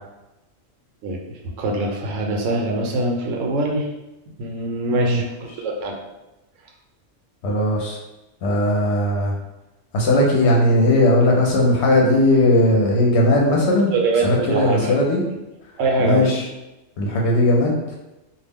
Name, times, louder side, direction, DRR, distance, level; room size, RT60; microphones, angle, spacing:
voice 1, 1.6-3.9 4.4-5.9 13.9-15.1 15.8-16.2, right 2 dB, 85° right, 1 dB, 1.0 m, -23 dB
voice 2, 4.9-5.2 5.5-5.6 7.4-8.0 8.4-9.3 9.9-13.9 14.2-15.2 16.0-16.5 17.0-17.8, left 1 dB, 70° left, -2 dB, 0.8 m, -18 dB
2.3 x 2.0 x 3.4 m, 1.0 s
omnidirectional pair, 1.3 m